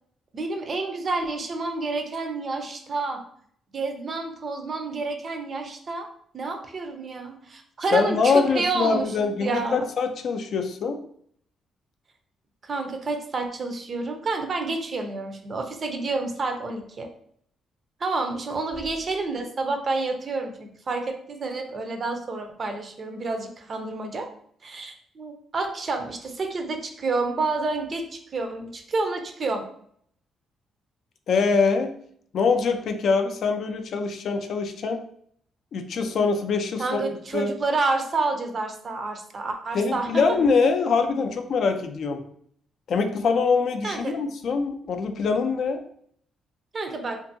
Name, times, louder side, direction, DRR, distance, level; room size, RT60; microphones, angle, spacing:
voice 1, 0.3-3.2 3.7-6.1 6.3-9.1 9.4-9.8 12.6-17.1 18.0-24.3 24.6-29.6 36.8-40.2 43.8-44.1 46.7-47.2, right 3 dB, 40° right, 5 dB, 0.5 m, -29 dB
voice 2, 7.9-11.0 31.3-31.9 32.3-35.0 35.7-37.5 39.7-42.2 42.9-45.8, left 4 dB, 60° left, 6 dB, 0.3 m, -24 dB
2.6 x 2.6 x 2.6 m, 0.64 s
cardioid pair, 90°, 0 cm